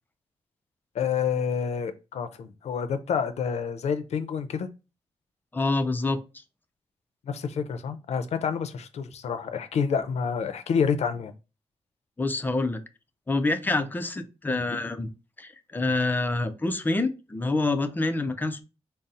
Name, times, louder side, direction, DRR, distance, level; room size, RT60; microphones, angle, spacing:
voice 1, 0.9-4.7 7.3-11.3, left 6 dB, 75° left, 0.5 m, -28 dB
voice 2, 5.5-6.2 12.2-12.8 13.3-15.1 15.4-18.6, left 2 dB, 15° left, 0.4 m, -27 dB
4.0 x 2.0 x 3.7 m
wide cardioid pair, 145°, 11 cm